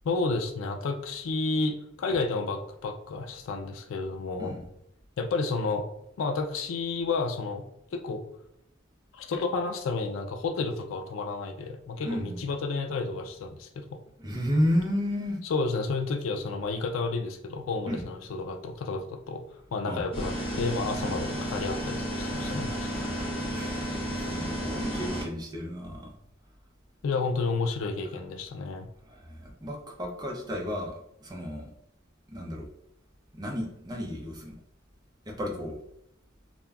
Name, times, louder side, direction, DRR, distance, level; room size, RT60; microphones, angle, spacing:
voice 1, 0.0-4.6 5.2-5.9 6.2-7.7 7.9-8.3 9.1-14.0 15.5-19.4 19.7-22.9 27.0-28.9, left 3 dB, 85° left, 4 dB, 0.4 m, -31 dB
voice 2, 12.0-12.4 14.2-15.4 17.9-18.0 19.9-20.0 21.0-21.2 22.2-26.2 29.0-31.7 32.3-32.7 33.3-34.6 35.3-35.8, equal, 20° right, 0 dB, 0.5 m, -33 dB
sound 1, 20.1-25.2, equal, 30° left, 1.0 m, -32 dB
2.2 x 2.1 x 3.4 m, 0.80 s
head